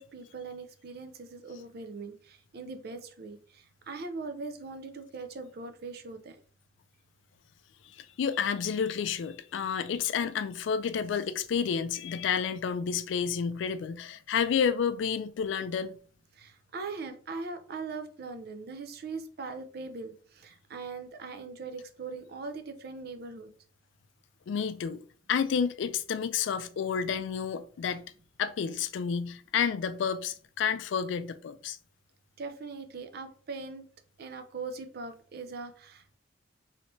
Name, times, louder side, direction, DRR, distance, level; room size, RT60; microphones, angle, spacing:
voice 1, 0.0-6.4 16.3-23.5 32.4-33.9 34.2-36.2, right 4 dB, 55° right, 0.5 m, -41 dB
voice 2, 7.9-16.0 24.5-25.0 25.3-28.0 28.4-31.8, left 7 dB, 75° left, 0.3 m, -30 dB
3.2 x 2.7 x 3.0 m
head